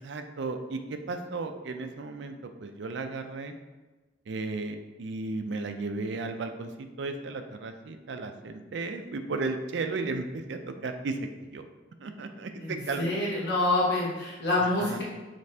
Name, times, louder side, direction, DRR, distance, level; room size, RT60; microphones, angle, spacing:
voice 1, 0.0-3.5 4.3-6.7 7.0-11.2 11.5-11.6 12.0-13.2 14.8-15.0, right 3 dB, 65° right, 6 dB, 0.4 m, -34 dB
voice 2, 12.6-15.0, left 2 dB, 60° left, -5 dB, 0.9 m, -27 dB
5.1 x 3.3 x 2.8 m, 1.2 s
head